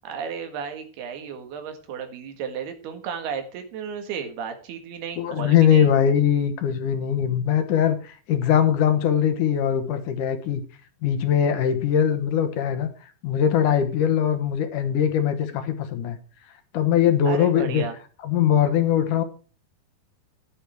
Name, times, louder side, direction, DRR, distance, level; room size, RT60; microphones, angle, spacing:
voice 1, 0.0-5.9 17.3-18.0, right 6 dB, 90° right, 7 dB, 3.9 m, -33 dB
voice 2, 5.2-10.6 11.0-12.9 13.2-16.2 16.7-17.8 18.2-19.2, left 9 dB, 65° left, 9 dB, 2.5 m, -21 dB
11.0 x 10.5 x 4.6 m, 0.37 s
omnidirectional pair, 4.4 m